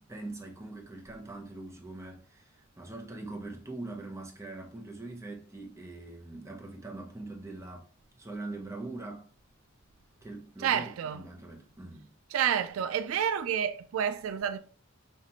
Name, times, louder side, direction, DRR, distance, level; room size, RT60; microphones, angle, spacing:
voice 1, 0.0-7.9 8.2-9.3 10.2-12.1, right 2 dB, 15° right, 0.8 m, -42 dB
voice 2, 10.6-11.2 12.3-14.6, right 8 dB, 85° right, 0.3 m, -29 dB
5.5 x 2.4 x 2.9 m
head